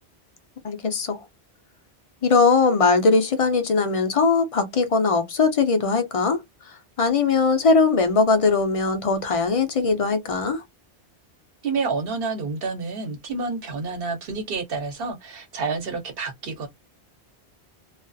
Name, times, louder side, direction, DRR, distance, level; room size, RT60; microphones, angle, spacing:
voice 1, 0.6-1.2 2.2-6.4 7.0-10.6, left 4 dB, 50° left, 0.4 m, -20 dB
voice 2, 11.6-16.7, right 4 dB, 65° right, 1.0 m, -29 dB
2.4 x 2.3 x 2.5 m
omnidirectional pair, 1.1 m